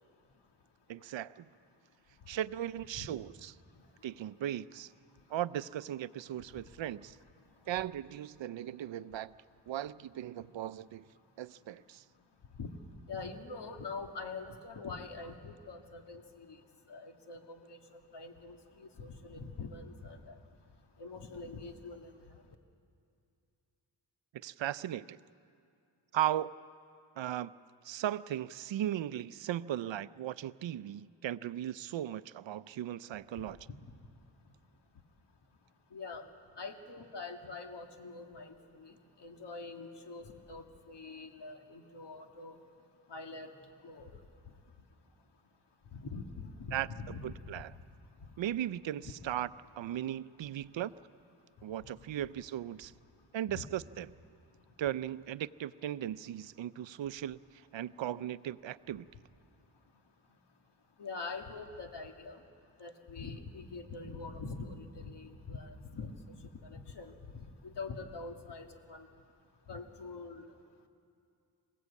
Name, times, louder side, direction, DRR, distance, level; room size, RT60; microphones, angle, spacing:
voice 1, 0.9-1.5 2.3-3.5 4.0-4.9 5.3-7.2 7.7-9.3 9.7-11.1 11.4-12.0 24.4-25.2 26.1-26.5 27.2-27.5 27.8-33.6 46.7-47.7 48.4-49.5 49.8-50.9 51.6-52.9 53.3-54.1 54.8-57.4 57.7-59.1, right 12 dB, 75° right, 15 dB, 0.6 m, -37 dB
voice 2, 13.1-16.6 16.9-20.4 21.0-22.1 33.7-33.8 35.9-36.2 36.6-38.9 39.2-42.6 43.1-43.5 43.8-44.1 45.9-47.5 49.0-49.1 53.5-53.7 61.0-62.4 62.8-69.1 69.7-70.4, left 4 dB, 65° left, 4 dB, 2.0 m, -44 dB
26.5 x 17.0 x 8.3 m, 2.5 s
wide cardioid pair, 90°, 45 cm